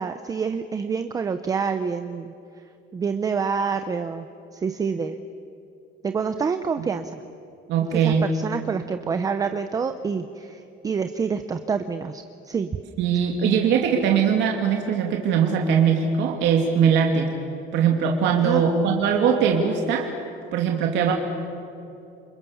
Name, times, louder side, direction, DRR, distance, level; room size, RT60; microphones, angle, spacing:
voice 1, 0.0-2.6 2.9-4.3 4.5-5.2 6.0-7.2 7.9-12.7 18.4-18.6, right 5 dB, 15° right, 9 dB, 0.7 m, -27 dB
voice 2, 7.7-8.2 13.0-17.3 17.7-20.1 20.5-21.1, right 7 dB, 60° right, 1 dB, 2.7 m, -21 dB
29.5 x 27.0 x 7.1 m, 2.7 s
cardioid pair, 180°, 21 cm